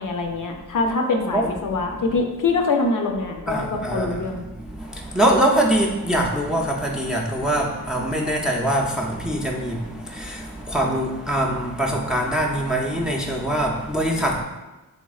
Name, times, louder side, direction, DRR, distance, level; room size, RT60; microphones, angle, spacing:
voice 1, 0.0-4.5, left 3 dB, 60° left, 3 dB, 0.5 m, -24 dB
voice 2, 3.5-14.4, right 1 dB, ahead, 0 dB, 0.4 m, -23 dB
3.4 x 3.2 x 2.3 m, 1.1 s
cardioid pair, 60°, 36 cm